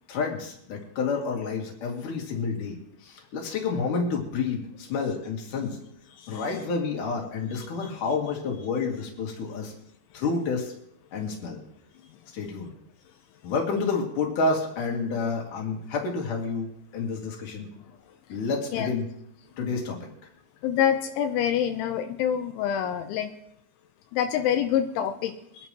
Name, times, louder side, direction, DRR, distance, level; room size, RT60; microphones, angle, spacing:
voice 1, 0.1-2.8 3.0-5.8 6.3-9.7 10.1-10.7 11.1-11.6 12.3-12.7 13.4-16.7 16.9-17.7 18.3-19.1 19.6-20.0, left 4 dB, 50° left, 0 dB, 3.5 m, -29 dB
voice 2, 20.6-23.3 24.1-25.7, left 9 dB, 85° left, 5 dB, 3.2 m, -26 dB
24.5 x 11.0 x 3.1 m, 0.73 s
omnidirectional pair, 5.4 m